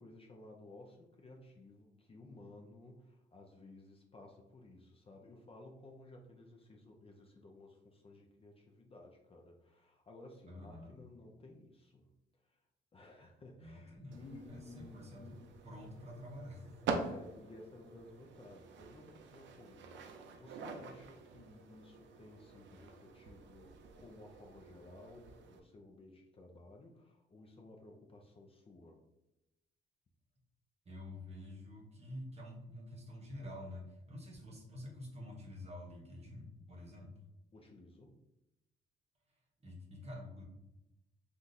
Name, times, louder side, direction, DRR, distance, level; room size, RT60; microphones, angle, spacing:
voice 1, 0.0-12.1 12.4-12.6 12.9-15.5 16.9-29.0 37.5-38.1, left 2 dB, 30° left, 1 dB, 0.5 m, -56 dB
voice 2, 10.5-11.0 13.6-14.2 14.5-15.4 15.6-16.9 30.8-37.1 39.6-40.4, left 1 dB, 30° right, 0 dB, 1.0 m, -48 dB
sound 1, 14.1-25.6, right 4 dB, 70° right, 0.5 m, -46 dB
3.6 x 2.4 x 2.6 m, 0.92 s
cardioid pair, 90°, 20 cm